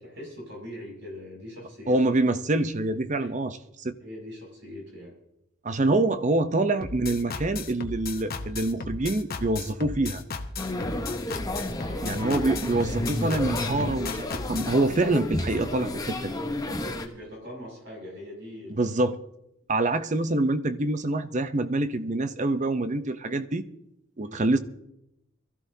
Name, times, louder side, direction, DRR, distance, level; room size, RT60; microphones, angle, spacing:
voice 1, 0.0-2.0 3.2-3.3 4.0-5.1 10.8-11.3 11.6-12.1 16.3-18.9 24.2-24.5, left 1 dB, 55° right, -1 dB, 6.3 m, -41 dB
voice 2, 1.9-4.0 5.6-10.2 12.0-16.2 18.8-19.2 19.7-23.6 24.2-24.6, right 2 dB, 35° right, 11 dB, 0.6 m, -26 dB
sound 1, 6.8-14.7, left 4 dB, 45° left, 0.9 m, -35 dB
sound 2, 10.6-17.1, left 1 dB, 15° left, 0.9 m, -31 dB
23.0 x 14.0 x 2.7 m, 0.84 s
head